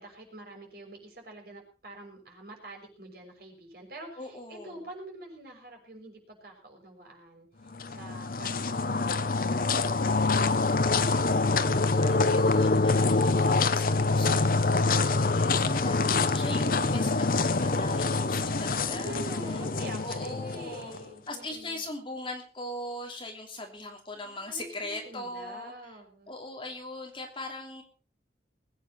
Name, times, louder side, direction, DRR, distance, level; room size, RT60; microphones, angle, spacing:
voice 1, 0.0-11.1 18.8-21.8 24.2-26.3, right 2 dB, 55° right, 2 dB, 6.3 m, -46 dB
voice 2, 4.2-4.8 11.9-19.3 20.0-20.9 21.3-25.7 26.3-27.8, left 1 dB, 30° left, 2 dB, 3.0 m, -40 dB
sound 1, 7.7-21.0, left 3 dB, 50° left, 0.9 m, -25 dB
21.0 x 9.4 x 5.5 m, 0.37 s
head